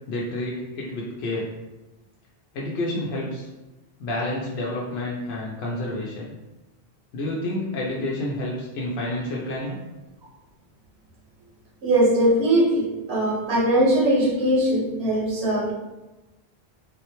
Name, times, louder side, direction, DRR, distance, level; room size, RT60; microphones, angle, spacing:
voice 1, 0.1-1.5 2.5-3.5 4.0-6.3 7.1-9.8, left 1 dB, 80° left, -4 dB, 0.8 m, -29 dB
voice 2, 11.8-15.7, right 1 dB, 80° right, -3 dB, 1.1 m, -20 dB
3.7 x 2.1 x 2.9 m, 1.1 s
omnidirectional pair, 1.1 m